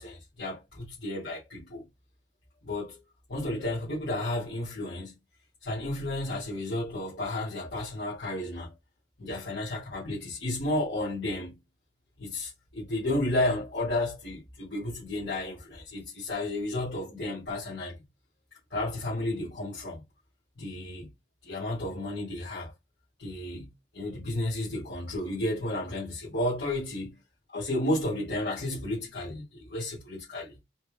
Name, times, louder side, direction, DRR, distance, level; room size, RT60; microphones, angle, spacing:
voice 1, 0.0-1.8 2.6-3.0 3.3-5.2 5.6-8.7 9.2-11.5 12.2-18.0 18.7-20.0 20.6-21.1 21.4-22.7 23.2-23.7 23.9-27.2 27.5-30.6, left 1 dB, 70° left, 2.4 m, -32 dB
4.3 x 2.4 x 3.4 m
head